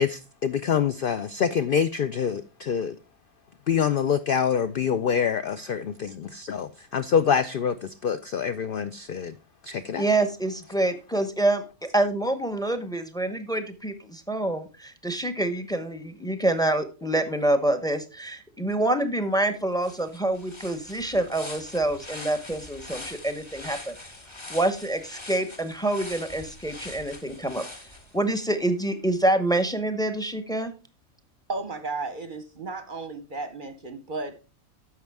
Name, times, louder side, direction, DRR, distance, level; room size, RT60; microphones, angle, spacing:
voice 1, 0.0-3.0 3.7-5.8 6.8-9.3 9.6-10.0, left 7 dB, 70° left, 11 dB, 0.5 m, -25 dB
voice 2, 10.0-11.6 11.9-24.0 24.5-27.6 28.1-30.7, right 1 dB, 5° left, 10 dB, 0.6 m, -26 dB
sound 1, 19.4-19.5 19.8-28.5, left 2 dB, 20° left, 1.4 m, -43 dB
voice 3, 31.5-34.5, right 3 dB, 45° right, 10 dB, 0.8 m, -34 dB
10.5 x 7.0 x 3.5 m, 0.32 s
omnidirectional pair, 1.5 m